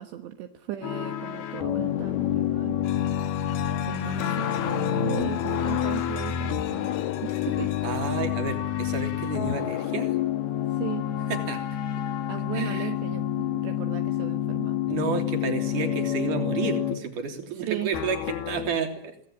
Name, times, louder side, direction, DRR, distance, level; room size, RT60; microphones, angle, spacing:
voice 1, 0.0-2.8 3.8-6.9 7.2-8.0 10.7-11.1 12.3-14.8 17.5-17.9, right 13 dB, 75° right, 6 dB, 3.4 m, -37 dB
sound 1, 0.8-17.0 17.9-18.7, left 10 dB, 60° left, 3.6 m, -28 dB
sound 2, 2.8-8.2, left 10 dB, 85° left, 3.8 m, -43 dB
voice 2, 7.8-10.2 11.3-11.8 12.5-12.9 14.9-19.3, right 5 dB, 45° right, 5 dB, 4.5 m, -31 dB
25.0 x 18.0 x 9.0 m, 0.72 s
omnidirectional pair, 5.3 m